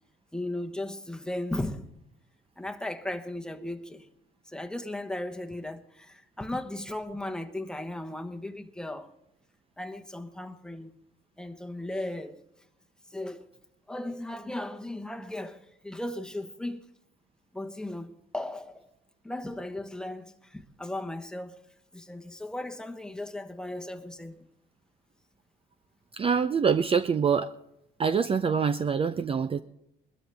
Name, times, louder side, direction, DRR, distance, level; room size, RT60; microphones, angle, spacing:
voice 1, 0.3-1.9 2.6-4.1 4.5-9.1 9.8-10.9 11.4-12.4 13.1-13.5 13.9-16.8 17.5-18.9 19.2-21.6 21.9-24.4, left 1 dB, 5° left, 1.1 m, -36 dB
voice 2, 26.1-27.5 28.0-29.6, right 6 dB, 30° right, 0.5 m, -25 dB
21.0 x 13.0 x 3.4 m
cardioid pair, 105°, 19 cm